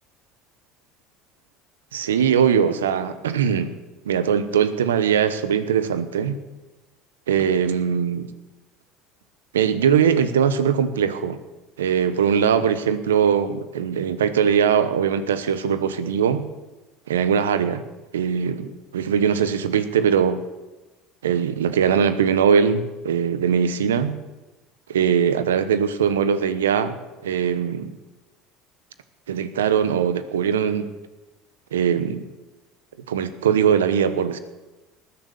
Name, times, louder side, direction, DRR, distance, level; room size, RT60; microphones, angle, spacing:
voice 1, 1.9-3.7 4.1-6.4 7.3-8.3 9.5-11.4 11.8-16.5 17.1-17.8 18.1-20.4 21.2-24.2 24.9-26.9 27.2-27.9 29.3-30.9 31.7-32.2 33.1-34.4, right 7 dB, 90° right, 12 dB, 1.0 m, -21 dB
19.5 x 7.0 x 6.8 m, 1.1 s
hypercardioid pair, 75°, 0 cm